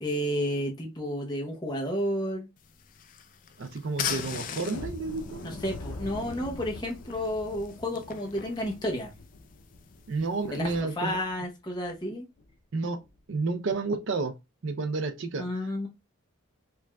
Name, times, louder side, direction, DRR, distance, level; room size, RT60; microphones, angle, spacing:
voice 1, 0.0-2.5 5.4-9.1 10.5-10.6 11.0-12.2 15.4-15.9, equal, 20° left, 0.7 m, -31 dB
sound 1, 2.6-10.8, left 7 dB, 40° left, 0.4 m, -41 dB
voice 2, 3.6-5.4 10.1-11.2 12.7-13.0 13.3-14.3 14.6-15.4, right 3 dB, 65° right, 0.5 m, -30 dB
sound 2, 4.7-11.4 11.8-11.9 12.4-12.5 13.0-13.2, left 2 dB, 85° left, 0.6 m, -44 dB
4.6 x 2.5 x 2.2 m
head